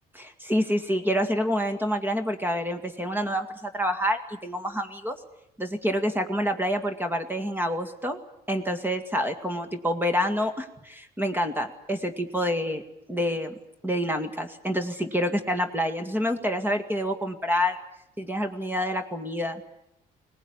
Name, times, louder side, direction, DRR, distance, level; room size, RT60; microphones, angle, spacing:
voice 1, 0.2-5.2 5.6-8.2 8.5-12.8 13.1-13.5 13.8-17.8 18.2-19.6, equal, 10° right, 7 dB, 2.0 m, -27 dB
21.5 x 19.0 x 9.8 m, 0.84 s
cardioid pair, 110°, 17 cm